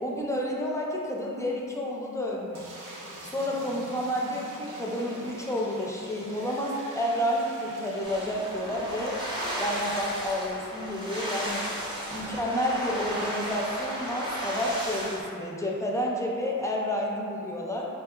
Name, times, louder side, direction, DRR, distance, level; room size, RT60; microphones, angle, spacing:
voice 1, 0.0-2.7 3.2-9.2 9.6-11.6 12.1-17.9, equal, 10° left, -3 dB, 0.5 m, -30 dB
sound 1, 2.5-9.7 10.0-10.1 10.3-10.4 12.1-12.5, right 1 dB, 65° right, 0.6 m, -45 dB
sound 2, 8.0-15.2, equal, 15° right, 0.8 m, -34 dB
4.2 x 2.7 x 2.3 m, 2.5 s
wide cardioid pair, 45°, 34 cm